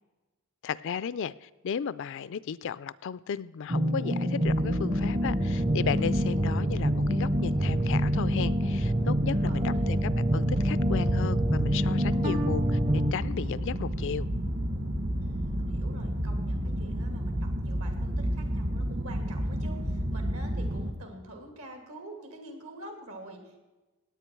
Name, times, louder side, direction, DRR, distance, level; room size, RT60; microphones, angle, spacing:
voice 1, 0.6-14.3, left 7 dB, 55° left, 18 dB, 0.4 m, -35 dB
sound 1, 3.7-13.1, equal, 30° right, 0.7 m, -27 dB
sound 2, 4.4-20.9, equal, 50° right, 1.4 m, -32 dB
voice 2, 9.4-9.9 15.2-23.6, right 1 dB, 80° right, 4 dB, 2.6 m, -46 dB
18.5 x 8.6 x 4.5 m, 1.2 s
head